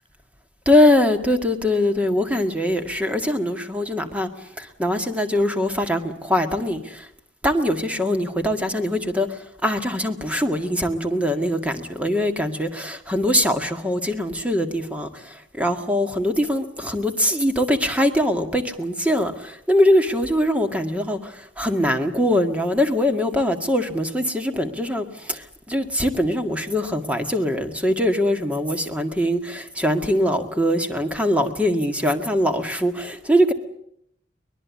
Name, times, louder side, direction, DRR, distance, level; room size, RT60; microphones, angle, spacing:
voice 1, 0.7-7.1 7.4-33.5, left 1 dB, 5° right, 1.9 m, -22 dB
23.5 x 21.0 x 8.5 m
head